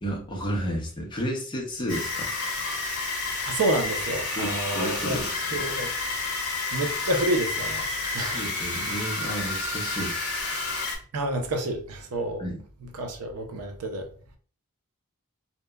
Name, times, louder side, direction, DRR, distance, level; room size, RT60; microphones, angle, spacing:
voice 1, 0.0-2.3 4.4-5.6 8.2-10.2 12.4-12.6, equal, 20° left, 0.5 m, -32 dB
sound 1, 1.9-11.0, left 3 dB, 60° left, 0.8 m, -30 dB
voice 2, 3.5-5.2 5.5-5.9 6.7-7.9 8.1-8.4 11.1-12.5 13.0-14.1, right 1 dB, 80° right, 0.5 m, -29 dB
2.7 x 2.1 x 2.2 m
head